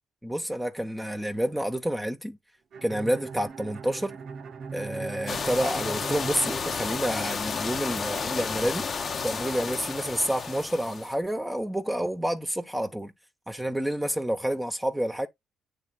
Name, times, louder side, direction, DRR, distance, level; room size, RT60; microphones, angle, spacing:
voice 1, 0.2-2.4 2.8-4.2 4.7-8.8 9.2-13.1 13.5-15.3, equal, 10° right, 1.1 m, -29 dB
Bowed string instrument, 2.7-7.5, right 5 dB, 60° right, 0.9 m, -40 dB
sound 1, 5.3-11.1, left 5 dB, 50° left, 0.9 m, -32 dB
8.7 x 3.6 x 3.7 m
supercardioid pair, 55°, 0 cm